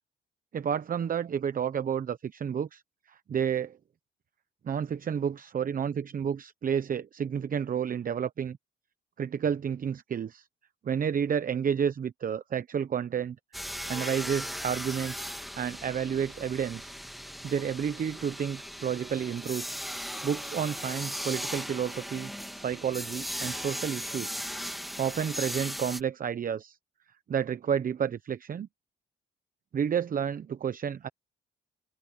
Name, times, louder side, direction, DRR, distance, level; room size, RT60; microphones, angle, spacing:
voice 1, 0.5-2.8 3.1-3.8 4.6-8.6 9.2-10.5 10.8-15.3 15.6-16.9 17.4-19.8 20.2-24.4 25.0-26.8 27.3-28.7 29.7-31.1, right 8 dB, 45° right, 0.9 m, -31 dB
sound 1, 13.5-26.0, equal, ahead, 1.8 m, -38 dB
cardioid pair, 90°, 20 cm